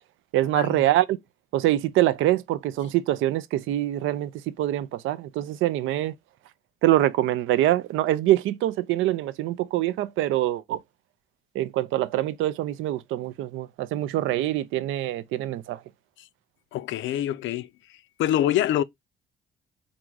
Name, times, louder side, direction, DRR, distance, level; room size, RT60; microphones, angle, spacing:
voice 1, 0.3-1.2 1.5-4.3 4.6-6.1 6.8-10.8 11.5-15.8, right 14 dB, 85° right, 0.4 m, -24 dB
voice 2, 16.7-17.7 18.2-18.8, left 12 dB, 75° left, 0.4 m, -25 dB
3.6 x 2.6 x 4.6 m
cardioid pair, 90°, 20 cm